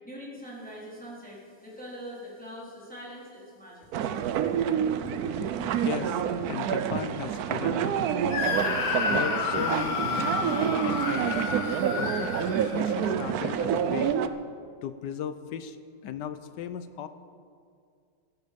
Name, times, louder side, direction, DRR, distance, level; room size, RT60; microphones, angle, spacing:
voice 1, 0.0-4.1, equal, 5° left, -6 dB, 3.8 m, -43 dB
sound 1, 3.9-14.3, right 8 dB, 65° right, 0.9 m, -28 dB
voice 2, 6.5-8.0 9.1-11.4 12.0-14.1 14.8-15.8 16.0-17.1, left 8 dB, 70° left, 11 dB, 1.2 m, -36 dB
Screaming, 8.3-13.2, left 4 dB, 85° left, 2.2 m, -30 dB
16.5 x 14.5 x 5.2 m, 2.3 s
omnidirectional pair, 2.2 m